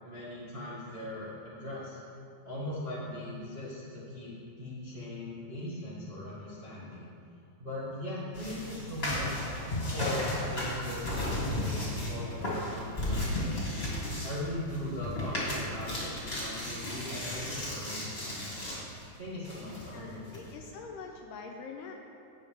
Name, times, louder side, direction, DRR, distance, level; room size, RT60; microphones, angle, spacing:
voice 1, 0.0-2.0 2.4-4.3 4.6-7.1 7.6-9.5 9.9-13.8 14.2-18.8 19.2-20.6, left 1 dB, 30° right, -9 dB, 0.9 m, -39 dB
sound 1, 8.3-19.0 19.4-20.5, left 1 dB, 20° left, 1.7 m, -34 dB
voice 2, 19.9-21.9, left 5 dB, 80° left, 1 dB, 2.0 m, -44 dB
16.5 x 6.3 x 3.6 m, 2.6 s
omnidirectional pair, 4.1 m